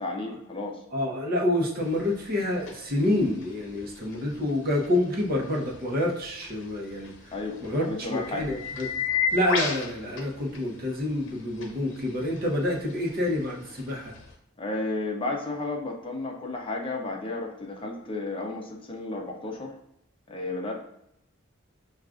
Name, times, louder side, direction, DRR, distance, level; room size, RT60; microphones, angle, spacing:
voice 1, 0.0-0.8 7.3-8.5 14.6-19.7 20.3-20.7, left 2 dB, 25° left, 1 dB, 0.5 m, -33 dB
voice 2, 0.9-7.1 7.6-8.9 9.3-14.1, left 1 dB, 45° right, -1 dB, 0.8 m, -27 dB
sound 1, 1.8-14.3, left 6 dB, 60° left, 0.7 m, -36 dB
6.1 x 2.3 x 2.4 m, 0.78 s
head